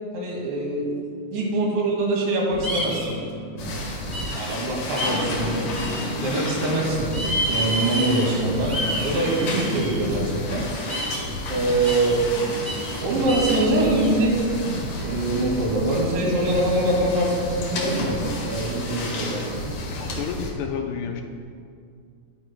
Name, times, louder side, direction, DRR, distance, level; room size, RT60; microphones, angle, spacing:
voice 1, 0.1-0.9 1.3-3.1 3.6-3.8 4.3-5.7 6.2-10.6 11.5-12.2 13.0-14.4 15.0-18.2 18.4-19.4, right 2 dB, 90° right, -2 dB, 4.4 m, -24 dB
sound 1, 2.5-19.7, right 2 dB, 70° right, 2.5 m, -37 dB
sound 2, 2.6-3.1 4.1-4.5 5.0-5.2 5.8-6.5 7.1-8.3 8.6-10.0 10.9-11.3 11.9-12.1 12.7-12.9 13.3-14.1, equal, 10° right, 1.3 m, -29 dB
sound 3, 3.6-20.5, left 2 dB, 55° left, 2.7 m, -32 dB
voice 2, 19.2-21.2, left 7 dB, 80° left, 4 dB, 2.6 m, -32 dB
21.0 x 9.3 x 2.2 m, 2.2 s
omnidirectional pair, 5.0 m